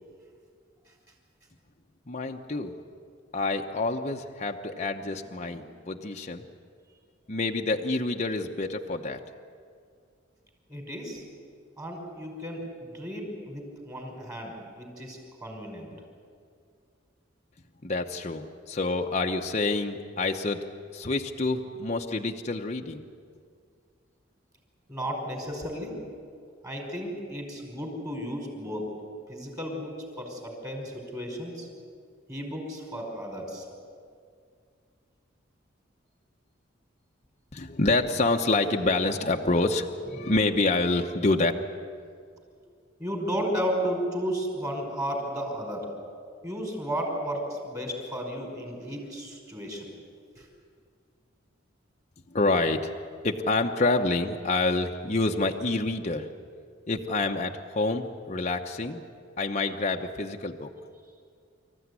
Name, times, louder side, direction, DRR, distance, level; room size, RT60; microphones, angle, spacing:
voice 1, 2.1-2.8 3.3-6.5 7.3-9.2 17.8-20.6 20.9-23.0 37.5-41.5 52.3-52.9 53.2-56.3 56.9-59.0 59.4-60.7, left 2 dB, 35° left, 2 dB, 0.9 m, -27 dB
voice 2, 10.7-11.2 11.8-15.9 24.9-26.0 26.6-28.9 29.3-31.7 32.3-33.7 40.0-40.3 43.0-45.9 46.4-49.9 50.4-50.5, equal, 20° right, 1 dB, 5.4 m, -33 dB
25.5 x 15.0 x 9.7 m, 2.2 s
head